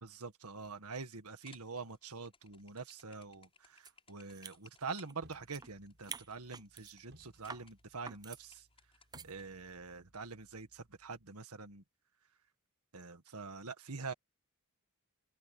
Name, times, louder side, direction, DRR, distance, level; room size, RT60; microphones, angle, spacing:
voice 1, 0.0-8.7 9.2-11.8 12.9-14.1, right 4 dB, 80° right, 1.8 m, -45 dB
sound 1, 1.3-9.4, left 5 dB, 25° left, 5.9 m, -64 dB
sound 2, 3.8-3.9 4.3-5.7 6.0-6.9 7.4-7.7 8.1-8.4 9.1-9.3, right 5 dB, 20° right, 0.5 m, -48 dB
sound 3, 5.2-11.3, equal, 55° right, 7.2 m, -65 dB
open air
head